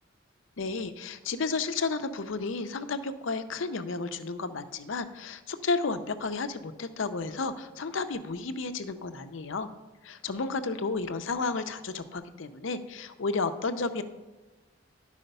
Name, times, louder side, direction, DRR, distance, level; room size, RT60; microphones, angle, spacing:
voice 1, 0.6-9.7 10.0-14.0, left 4 dB, 70° left, 10 dB, 0.6 m, -32 dB
11.0 x 4.9 x 5.4 m, 1.2 s
head